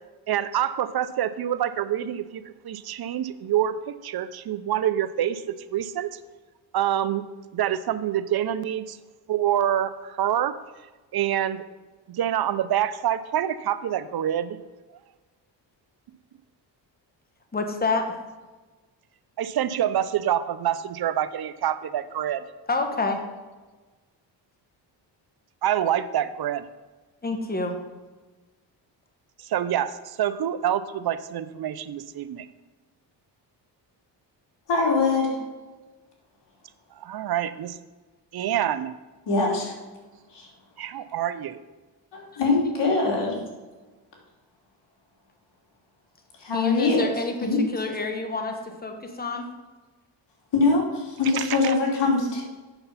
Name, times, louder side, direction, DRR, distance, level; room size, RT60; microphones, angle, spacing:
voice 1, 0.3-5.4 5.7-6.2 6.7-7.2 7.5-9.0 9.3-10.6 11.1-11.6 12.1-14.6 19.4-22.4 25.6-26.6 29.4-32.5 37.0-37.8 38.3-38.9 40.8-41.6 51.2-51.8, right 10 dB, 55° right, 13 dB, 0.7 m, -26 dB
voice 2, 17.5-18.0 22.7-23.2 27.2-27.8 46.5-47.3 47.7-49.5, left 3 dB, 20° left, 4 dB, 1.5 m, -28 dB
voice 3, 34.7-35.4 39.3-39.7 40.3-40.5 42.1-43.4 46.4-47.1 47.4-47.6 50.5-52.4, left 3 dB, 65° left, -2 dB, 3.4 m, -23 dB
8.9 x 6.8 x 5.7 m, 1.3 s
cardioid pair, 95°, 44 cm